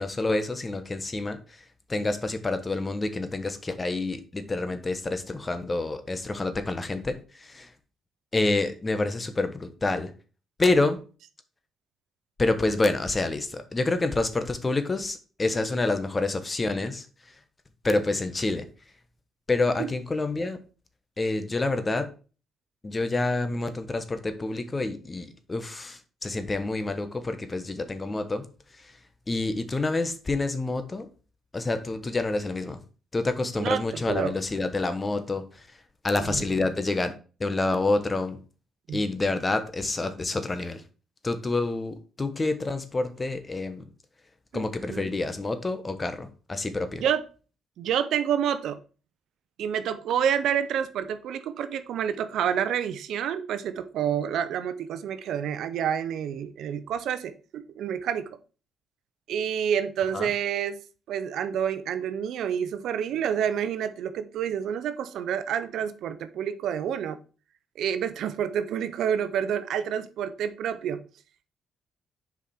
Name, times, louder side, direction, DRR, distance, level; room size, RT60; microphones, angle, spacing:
voice 1, 0.0-7.7 8.3-10.1 10.6-11.0 12.4-17.3 17.8-18.7 19.5-20.6 21.2-22.1 22.8-28.5 28.7-29.0 29.3-31.1 31.5-32.8 33.1-35.8 36.0-37.1 37.4-38.4 38.9-40.8 41.2-43.9 44.5-47.0 60.1-60.3, left 2 dB, 25° left, 1.1 m, -28 dB
voice 2, 33.6-34.3 36.2-36.4 38.9-39.0 44.5-44.6 44.9-45.1 47.0-47.2 47.8-48.8 49.6-58.3 59.3-60.8 61.1-67.2 67.8-71.0, right 8 dB, 75° right, 0.7 m, -28 dB
7.0 x 5.0 x 4.3 m
cardioid pair, 90°, 0 cm